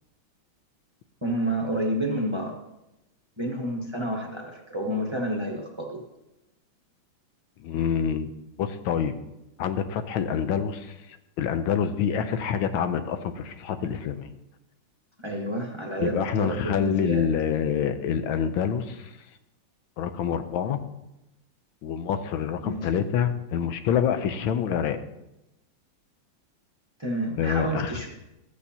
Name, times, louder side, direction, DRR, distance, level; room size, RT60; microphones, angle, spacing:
voice 1, 1.2-2.6 3.4-6.0 15.2-17.3 22.6-22.9 27.0-28.1, right 1 dB, 25° right, 0 dB, 0.6 m, -29 dB
voice 2, 7.6-8.3 8.6-9.1 9.6-10.9 11.4-14.3 16.0-19.1 20.0-20.8 21.8-25.0 27.4-28.0, left 8 dB, 85° left, 9 dB, 1.4 m, -26 dB
13.5 x 8.3 x 2.8 m, 0.91 s
omnidirectional pair, 2.2 m